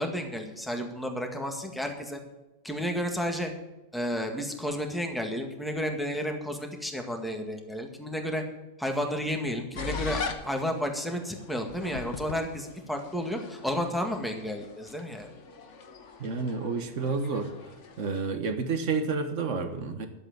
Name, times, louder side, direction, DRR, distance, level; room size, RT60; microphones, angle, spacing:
voice 1, 0.0-2.2 2.6-3.5 3.9-8.4 8.8-15.3, equal, ahead, 3 dB, 1.7 m, -32 dB
sound 1, 9.8-18.3, left 5 dB, 70° left, 1.5 m, -41 dB
voice 2, 16.2-17.5 18.0-20.1, right 4 dB, 80° right, 8 dB, 1.6 m, -30 dB
11.5 x 7.9 x 7.8 m, 1.0 s
omnidirectional pair, 1.3 m